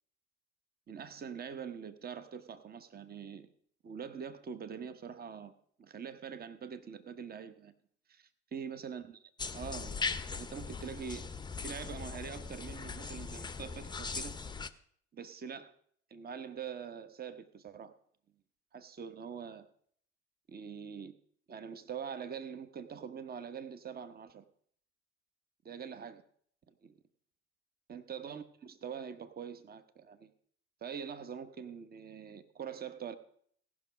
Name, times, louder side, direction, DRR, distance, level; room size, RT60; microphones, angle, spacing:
voice 1, 0.9-3.5 3.8-5.5 5.8-7.7 8.1-11.3 11.6-14.4 15.1-15.7 16.1-17.9 18.7-19.7 20.5-21.1 21.5-24.4 25.6-26.2 26.7-26.9 27.9-30.3 30.8-33.2, right 7 dB, 25° right, 12 dB, 1.0 m, -44 dB
sound 1, 9.4-14.7, left 4 dB, 15° left, 0.7 m, -39 dB
17.0 x 6.0 x 5.1 m, 0.62 s
figure-of-eight pair, 55°, 35 cm